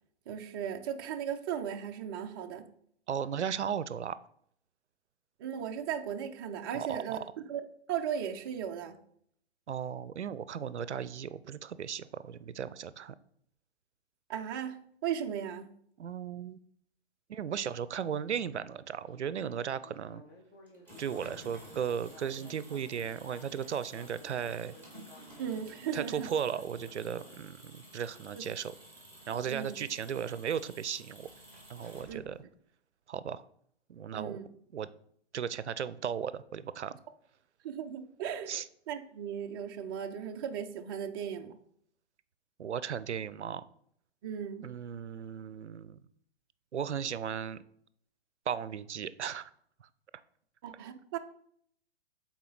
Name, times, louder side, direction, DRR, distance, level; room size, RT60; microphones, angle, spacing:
voice 1, 0.3-2.7 5.4-7.6 7.9-9.0 14.3-15.7 25.4-26.3 28.3-28.4 29.5-29.7 32.1-32.2 34.1-34.5 37.6-38.5 38.9-41.6 44.2-44.7 50.6-51.2, right 8 dB, 20° right, 5 dB, 0.4 m, -36 dB
voice 2, 3.1-4.2 6.7-7.2 9.7-13.1 16.0-16.6 17.3-20.2 21.0-24.7 25.9-28.7 29.3-31.3 31.7-32.4 33.1-33.4 33.9-34.4 34.7-34.9 35.3-37.0 38.5-38.6 42.6-43.6 44.6-46.0 46.7-47.6 48.5-49.5, right 8 dB, 90° right, 16 dB, 0.5 m, -36 dB
Speech synthesizer, 19.1-27.4, left 2 dB, 30° left, 1.5 m, -56 dB
sound 1, 20.7-32.5, right 1 dB, 5° left, 2.0 m, -53 dB
8.3 x 4.2 x 3.9 m, 0.66 s
hypercardioid pair, 130°, 33 cm